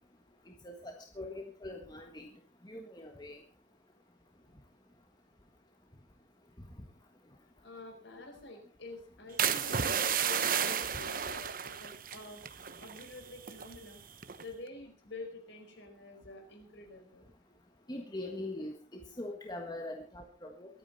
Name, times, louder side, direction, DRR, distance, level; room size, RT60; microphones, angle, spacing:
voice 1, 0.6-2.3 2.6-3.4 17.9-18.7 19.2-20.8, left 1 dB, 20° left, 2 dB, 1.5 m, -42 dB
voice 2, 7.6-12.4 12.8-14.0 14.4-17.2, left 2 dB, 60° left, 4 dB, 4.8 m, -48 dB
sound 1, 9.4-13.1 13.4-13.8 14.2-14.5, right 8 dB, 45° right, 1.0 m, -32 dB
23.0 x 9.1 x 4.1 m, 0.38 s
head